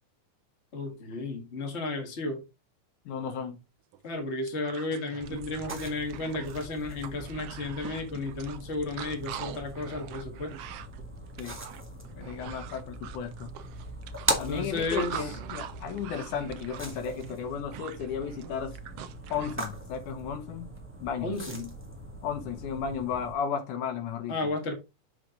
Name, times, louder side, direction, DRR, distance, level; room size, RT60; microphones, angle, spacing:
voice 1, 0.7-2.4 4.0-10.5 14.5-15.3 21.2-21.7 24.3-24.7, left 2 dB, 25° left, 1.6 m, -33 dB
voice 2, 3.1-3.6 11.4-11.6 12.2-13.5 14.4-18.8 19.3-20.7 21.0-21.3 22.2-24.4, left 7 dB, 80° left, 2.7 m, -34 dB
sound 1, 3.9-4.0 4.3-19.6, right 10 dB, 85° right, 1.3 m, -43 dB
sound 2, 5.2-23.3, right 1 dB, 10° right, 0.6 m, -40 dB
6.3 x 6.1 x 3.8 m
omnidirectional pair, 3.5 m